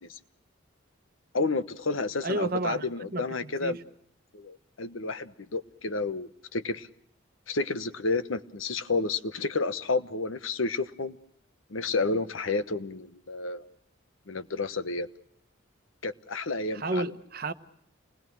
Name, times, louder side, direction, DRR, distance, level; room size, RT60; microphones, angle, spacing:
voice 1, 1.3-3.8 4.3-6.9 7.5-11.2 11.7-13.6 14.3-15.1 16.0-17.1, left 3 dB, 85° left, 1.1 m, -30 dB
voice 2, 2.2-3.8 16.7-17.5, right 2 dB, 45° right, 1.0 m, -32 dB
29.0 x 20.5 x 6.2 m
head